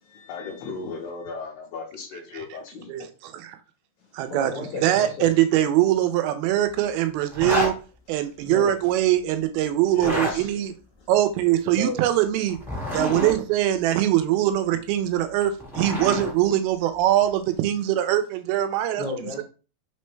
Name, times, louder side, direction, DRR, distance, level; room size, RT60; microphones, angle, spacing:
voice 1, 0.1-3.1 9.9-10.5, left 4 dB, 80° left, 2.4 m, -36 dB
voice 2, 2.9-3.6 4.2-4.5 4.8-7.7 8.1-10.7 11.1-12.6 12.9-19.0, right 13 dB, 85° right, 2.4 m, -22 dB
voice 3, 4.3-5.3 8.2-8.8 10.0-10.3 11.0-11.1 11.7-12.0 12.8-13.0 19.0-19.4, left 3 dB, 60° left, 2.3 m, -33 dB
Zipper (clothing), 7.3-7.7 9.9-10.3 12.5-13.3 15.2-16.3, left 1 dB, ahead, 0.6 m, -28 dB
5.8 x 2.1 x 3.1 m
omnidirectional pair, 4.3 m